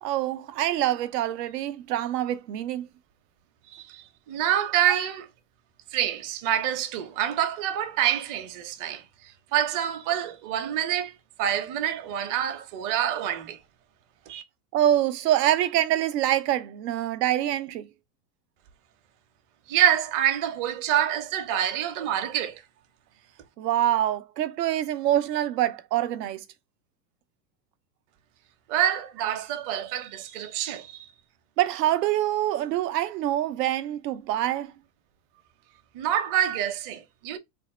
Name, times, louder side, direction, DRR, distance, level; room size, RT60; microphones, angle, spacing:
voice 1, 0.0-2.9 14.7-17.9 23.6-26.4 31.6-34.7, right 12 dB, 85° right, 0.7 m, -25 dB
voice 2, 3.7-5.3 5.9-13.6 14.3-14.4 19.7-22.6 28.7-31.1 35.9-37.4, right 11 dB, 40° right, 0.8 m, -27 dB
3.4 x 2.1 x 4.1 m
supercardioid pair, 115°, 47 cm